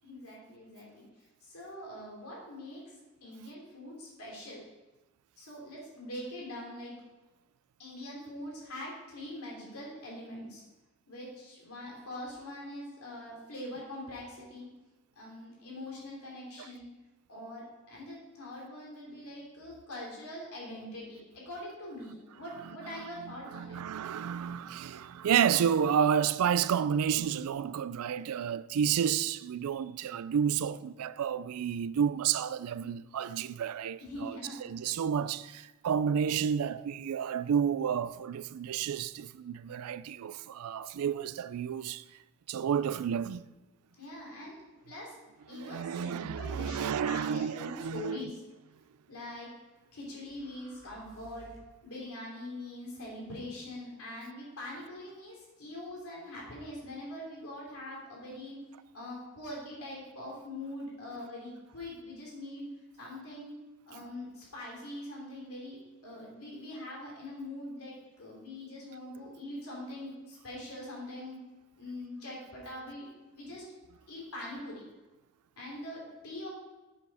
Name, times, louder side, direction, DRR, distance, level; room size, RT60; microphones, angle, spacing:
voice 1, 0.0-1.0 1.4-2.9 3.2-4.6 5.4-6.9 7.8-10.6 11.1-14.7 15.2-16.9 17.3-23.8 32.7-32.9 34.0-34.6 44.0-44.6 44.9-45.1 45.5-48.3 49.1-49.5 49.9-51.5 51.8-58.6 58.9-62.7 63.0-63.5 63.9-65.8 66.0-71.4 71.8-73.6 74.1-74.8 75.6-76.5, left 1 dB, 85° left, 3.2 m, -43 dB
voice 2, 23.5-42.0 42.5-43.5 45.5-48.2, right 8 dB, 85° right, 0.3 m, -30 dB
sound 1, 50.2-51.8, equal, 65° left, 2.4 m, -56 dB
7.7 x 7.0 x 4.8 m
head